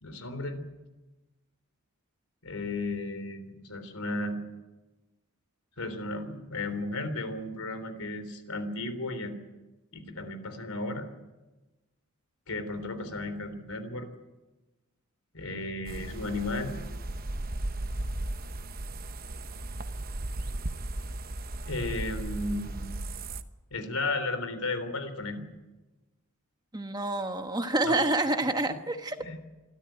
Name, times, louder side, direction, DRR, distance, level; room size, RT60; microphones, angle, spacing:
voice 1, 0.0-0.6 2.4-4.4 5.8-9.3 9.9-11.1 12.5-14.1 15.3-16.7 21.7-22.8 23.7-25.4 27.8-28.0 29.2-29.4, left 2 dB, 80° left, 10 dB, 3.4 m, -34 dB
sound 1, 15.9-23.4, right 1 dB, 40° right, 0.9 m, -36 dB
voice 2, 26.7-29.2, right 2 dB, 20° right, 7 dB, 1.2 m, -28 dB
26.0 x 13.5 x 9.2 m, 1.1 s
head